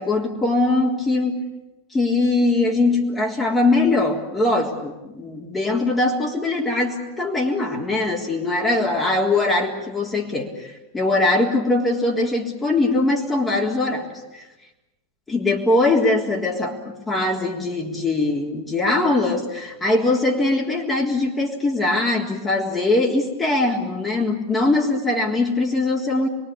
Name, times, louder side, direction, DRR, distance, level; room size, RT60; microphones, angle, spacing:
voice 1, 0.0-1.4 1.9-14.4 15.3-26.3, left 2 dB, 15° left, -1 dB, 3.7 m, -21 dB
26.0 x 22.5 x 8.6 m, 1.0 s
figure-of-eight pair, 90°, 0 cm